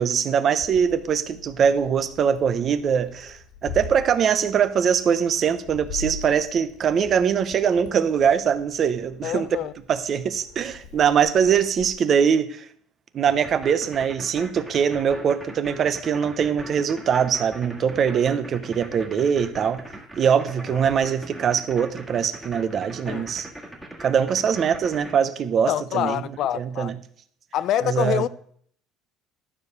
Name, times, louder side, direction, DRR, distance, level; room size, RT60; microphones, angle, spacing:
voice 1, 0.0-9.5 9.9-12.6 13.1-19.8 20.2-23.5 24.0-26.2 26.5-26.9 27.8-28.2, right 7 dB, 35° right, 0.7 m, -22 dB
Meow, 0.6-11.9, left 4 dB, 65° left, 1.9 m, -41 dB
voice 2, 9.2-9.7 20.7-20.8 23.0-23.4 25.7-26.9 27.5-28.3, left 11 dB, 50° left, 0.3 m, -26 dB
sound 1, 13.3-25.1, right 1 dB, 5° right, 1.8 m, -40 dB
12.5 x 4.9 x 6.6 m
cardioid pair, 155°, 0 cm